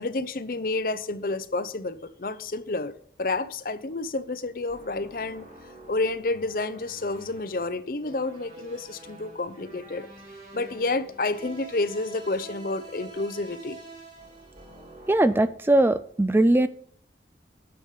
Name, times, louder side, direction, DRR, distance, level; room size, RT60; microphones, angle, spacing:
voice 1, 0.0-2.9 3.2-5.5 5.9-10.1 10.5-13.8, left 3 dB, 50° left, 0.6 m, -30 dB
sound 1, 4.7-15.4, right 2 dB, 40° right, 3.7 m, -47 dB
voice 2, 15.1-16.7, right 1 dB, 15° right, 0.3 m, -20 dB
10.0 x 7.0 x 4.9 m
head